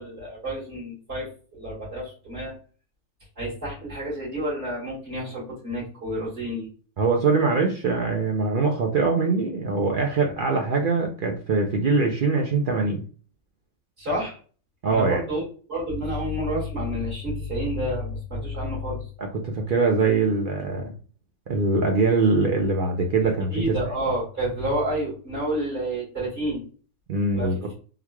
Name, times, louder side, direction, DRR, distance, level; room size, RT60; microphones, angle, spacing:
voice 1, 0.0-2.5 3.4-6.7 14.0-14.4 14.9-19.1 23.2-26.6 27.3-27.7, equal, 45° right, -8 dB, 2.1 m, -29 dB
voice 2, 7.0-13.0 14.8-15.2 19.2-20.9 21.5-23.8 27.1-27.6, right 4 dB, 70° right, 2 dB, 0.5 m, -23 dB
3.7 x 3.0 x 2.2 m, 0.40 s
omnidirectional pair, 1.5 m